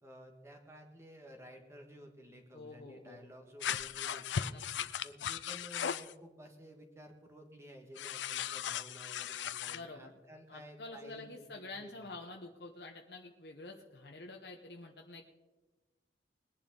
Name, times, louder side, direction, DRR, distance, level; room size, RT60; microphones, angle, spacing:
voice 1, 0.0-4.6 5.0-12.1, equal, 15° right, 2 dB, 1.7 m, -53 dB
voice 2, 2.5-3.2 4.5-4.9 9.7-10.1 10.5-15.3, left 2 dB, 65° left, 2 dB, 1.1 m, -48 dB
sound 1, 3.6-6.1 7.9-9.8, left 8 dB, 90° left, 0.5 m, -37 dB
21.0 x 10.5 x 3.9 m, 1.2 s
head